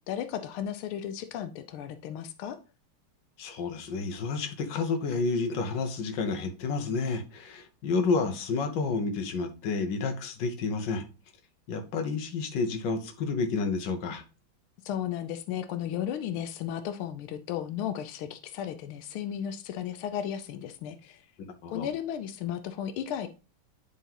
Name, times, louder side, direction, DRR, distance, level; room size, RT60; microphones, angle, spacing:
voice 1, 0.1-2.6 14.8-21.2 21.7-23.3, left 10 dB, 90° left, 1.5 m, -34 dB
voice 2, 3.4-11.0 11.7-14.2 21.6-21.9, left 4 dB, 65° left, 1.6 m, -30 dB
10.0 x 3.7 x 2.9 m
omnidirectional pair, 2.3 m